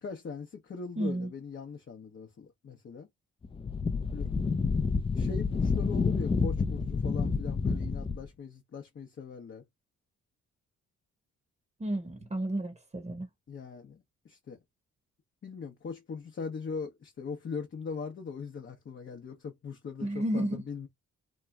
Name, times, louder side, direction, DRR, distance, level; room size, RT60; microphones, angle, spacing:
voice 1, 0.0-3.1 4.1-4.3 5.1-9.6 13.5-14.6 15.4-20.9, left 5 dB, 40° left, 0.7 m, -40 dB
voice 2, 1.0-1.3 11.8-13.3 20.0-20.6, right 1 dB, 20° right, 0.8 m, -32 dB
Wind, 3.4-8.3, left 4 dB, 20° left, 0.4 m, -29 dB
3.0 x 2.3 x 2.2 m
supercardioid pair, 50°, 31 cm